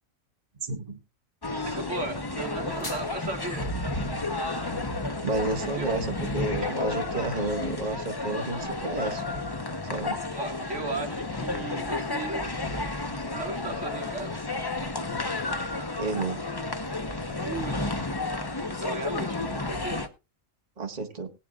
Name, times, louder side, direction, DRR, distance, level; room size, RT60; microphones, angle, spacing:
voice 1, 0.6-1.0 4.6-4.7 5.2-9.2 9.8-10.2 16.0-16.4 20.8-21.3, right 3 dB, 30° right, 2 dB, 1.7 m, -31 dB
sound 1, 1.4-20.1, left 2 dB, 20° left, 0.9 m, -32 dB
voice 2, 1.7-3.7 5.7-5.9 6.6-6.7 10.3-12.5 13.2-14.3 17.4-18.0 18.8-20.0, right 3 dB, 60° right, 2 dB, 2.2 m, -36 dB
sound 2, 2.4-3.4, left 2 dB, 55° left, 4.0 m, -42 dB
20.0 x 9.4 x 2.5 m, 0.27 s
omnidirectional pair, 1.4 m